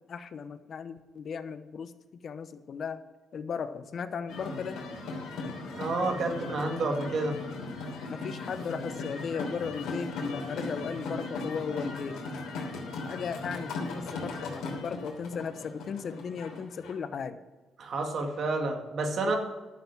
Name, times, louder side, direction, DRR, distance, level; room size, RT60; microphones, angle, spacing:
voice 1, 0.1-3.0 3.3-4.8 8.1-12.2 13.0-17.4 19.2-19.4, left 6 dB, 55° left, 12 dB, 0.9 m, -36 dB
sound 1, 4.3-16.9, left 3 dB, 80° left, 3.2 m, -38 dB
voice 2, 5.7-7.4 17.8-19.4, right 3 dB, 60° right, 3 dB, 2.2 m, -30 dB
12.0 x 7.2 x 7.4 m, 1.2 s
cardioid pair, 90°, 0 cm